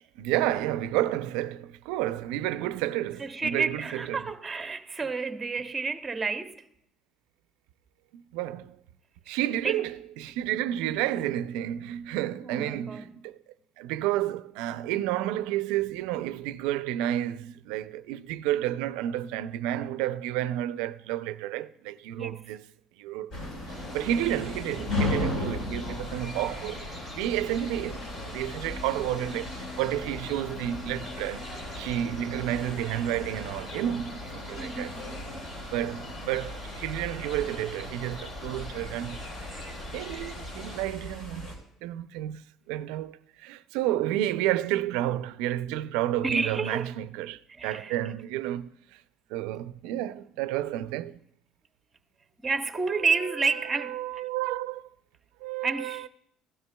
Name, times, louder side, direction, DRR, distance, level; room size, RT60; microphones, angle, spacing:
voice 1, 0.2-4.2 8.1-8.8 9.3-13.4 13.8-22.6 23.0-23.3 23.7-26.9 27.2-31.5 31.8-34.9 35.7-39.2 39.9-41.5 41.8-49.0 49.3-51.2 53.7-54.9 55.4-56.1, right 13 dB, 85° right, 0.4 m, -31 dB
voice 2, 3.2-6.7 9.3-9.4 9.6-9.8 12.4-13.1 22.1-22.5 34.6-35.0 46.2-46.9 47.5-47.9 52.4-54.0 55.6-56.1, right 4 dB, 20° right, 0.8 m, -30 dB
sound 1, 23.3-41.6, left 2 dB, 65° left, 5.2 m, -37 dB
sound 2, 23.7-40.8, left 1 dB, 45° left, 3.5 m, -43 dB
16.5 x 12.5 x 2.2 m
supercardioid pair, 105°, 0 cm